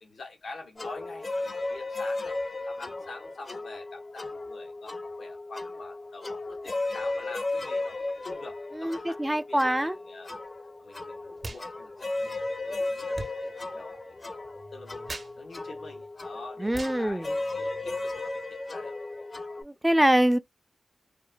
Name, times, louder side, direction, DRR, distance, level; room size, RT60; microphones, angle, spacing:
voice 1, 0.0-2.4 2.7-10.3 10.8-12.3 12.8-18.9, left 3 dB, 75° left, 0.7 m, -46 dB
sound 1, 0.8-19.6, left 2 dB, 45° left, 0.5 m, -35 dB
voice 2, 8.7-10.0 16.6-17.3 19.6-20.4, right 1 dB, 10° right, 0.3 m, -24 dB
sound 2, 11.4-11.7 11.9-18.1, right 2 dB, 55° right, 0.6 m, -45 dB
2.9 x 2.1 x 2.4 m
cardioid pair, 70°, 0 cm